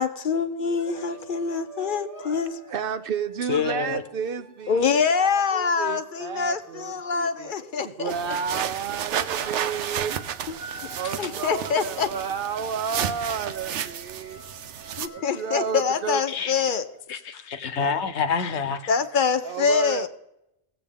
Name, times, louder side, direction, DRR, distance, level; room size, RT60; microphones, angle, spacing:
voice 1, 0.0-2.6 4.7-8.1 10.5-10.6 11.2-12.1 15.0-16.9 18.9-20.1, left 6 dB, 55° left, 10 dB, 0.7 m, -25 dB
sound 1, 0.6-7.6 8.4-8.7 9.1-17.0, right 2 dB, 15° right, 1.2 m, -47 dB
voice 2, 2.7-4.9 5.2-7.5 7.8-10.2 10.9-14.4 15.1-16.2 19.4-20.1, right 7 dB, 60° right, 11 dB, 0.7 m, -31 dB
voice 3, 3.5-4.0 16.3-16.5 17.1-18.9, left 6 dB, 75° left, 11 dB, 1.1 m, -27 dB
sound 2, 8.1-15.1, right 9 dB, 85° right, 1.0 m, -32 dB
18.0 x 7.8 x 3.5 m, 0.87 s
omnidirectional pair, 1.2 m